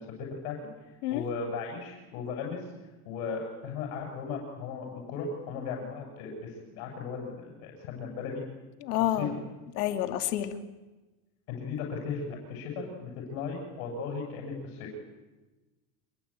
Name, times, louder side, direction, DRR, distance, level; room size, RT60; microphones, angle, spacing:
voice 1, 0.0-2.7 3.0-8.4 8.9-9.3 11.5-14.9, left 5 dB, 65° left, 1 dB, 8.0 m, -37 dB
voice 2, 8.8-9.3 9.8-10.5, left 13 dB, 85° left, 8 dB, 2.7 m, -28 dB
26.5 x 23.0 x 9.0 m, 1.1 s
supercardioid pair, 155°, 45 cm